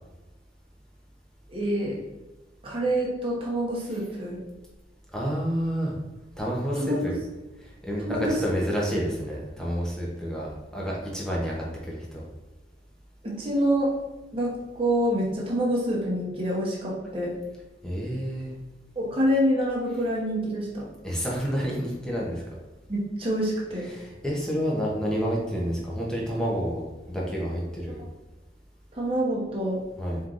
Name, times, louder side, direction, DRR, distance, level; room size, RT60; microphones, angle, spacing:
voice 1, 1.5-2.0 2.6-4.4 6.8-7.1 8.0-8.3 13.2-13.9 14.3-17.3 18.9-20.9 22.9-23.9 28.9-29.8, equal, 30° right, -5 dB, 1.0 m, -26 dB
voice 2, 5.1-6.0 6.4-7.2 7.6-12.2 17.8-18.5 21.0-22.4 23.9-28.0 30.0-30.2, equal, 5° left, -4 dB, 0.8 m, -29 dB
4.5 x 3.7 x 2.5 m, 1.1 s
head